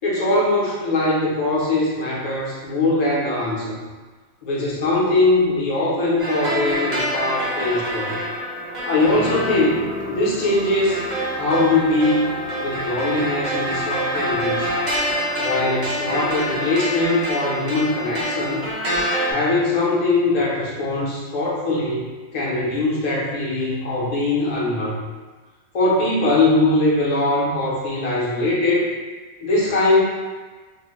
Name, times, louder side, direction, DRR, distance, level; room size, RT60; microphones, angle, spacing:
voice 1, 0.0-3.8 4.4-8.2 8.9-11.0 11.3-12.3 12.6-14.7 15.4-18.6 19.3-22.0 22.3-25.0 25.7-29.0 29.4-30.0, left 2 dB, 45° left, -5 dB, 0.6 m, -21 dB
sound 1, 6.2-19.3, equal, 45° right, 0.7 m, -26 dB
sound 2, 9.0-16.8, left 3 dB, 80° left, 0.9 m, -37 dB
2.8 x 2.0 x 3.0 m, 1.3 s
omnidirectional pair, 1.2 m